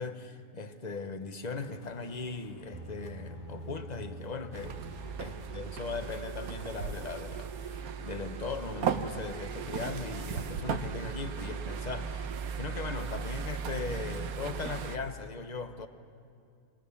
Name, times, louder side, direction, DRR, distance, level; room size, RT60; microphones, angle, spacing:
voice 1, 0.0-4.8 5.2-15.9, left 4 dB, 30° left, 1.0 m, -39 dB
sound 1, 1.6-6.9, left 6 dB, 90° left, 1.7 m, -56 dB
sound 2, 2.7-10.6, right 2 dB, 35° right, 1.0 m, -49 dB
sound 3, 4.5-15.0, right 6 dB, 65° right, 1.3 m, -37 dB
25.5 x 21.0 x 7.2 m
omnidirectional pair, 1.8 m